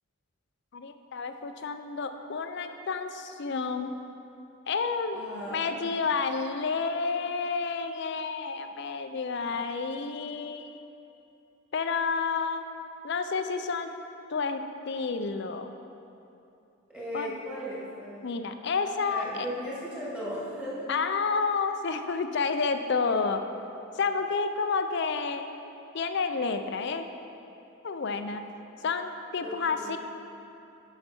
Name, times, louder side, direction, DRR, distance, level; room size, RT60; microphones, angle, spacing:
voice 1, 0.7-3.9 4.7-5.2 5.5-10.8 11.7-12.6 13.0-13.9 14.3-15.7 17.1-17.3 18.2-19.5 20.9-23.4 24.0-25.5 25.9-27.0 27.8-28.4 28.8-30.0, left 4 dB, 55° left, 8 dB, 0.5 m, -30 dB
voice 2, 5.1-5.8 16.9-18.3 19.1-20.9 29.4-30.0, equal, 5° right, -9 dB, 2.1 m, -37 dB
11.0 x 5.8 x 4.3 m, 2.8 s
head